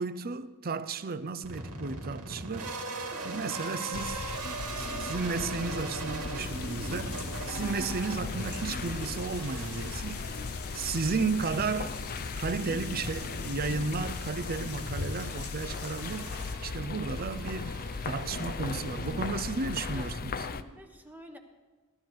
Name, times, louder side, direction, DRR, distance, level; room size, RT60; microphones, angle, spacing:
voice 1, 0.0-2.7 3.2-4.3 4.8-10.4 10.7-12.0 12.4-17.7 18.0-20.3, right 4 dB, 45° right, 0.6 m, -33 dB
sound 1, 1.4-20.6, right 3 dB, 85° right, 2.3 m, -41 dB
sound 2, 3.9-20.6, left 4 dB, 40° left, 0.5 m, -37 dB
sound 3, 6.4-16.5, left 6 dB, 65° left, 1.6 m, -45 dB
voice 2, 19.9-21.4, equal, 5° right, 1.1 m, -50 dB
17.5 x 12.5 x 4.7 m
head